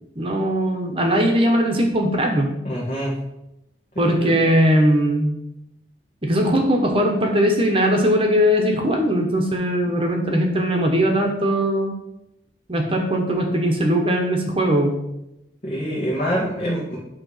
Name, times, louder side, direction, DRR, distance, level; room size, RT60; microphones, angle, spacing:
voice 1, 0.2-2.5 4.0-5.3 6.2-11.9 12.7-14.9, equal, 30° right, 2 dB, 1.1 m, -19 dB
voice 2, 2.6-3.1 3.9-4.4 15.6-17.0, equal, 40° left, -7 dB, 1.8 m, -25 dB
8.9 x 3.2 x 5.7 m, 0.87 s
head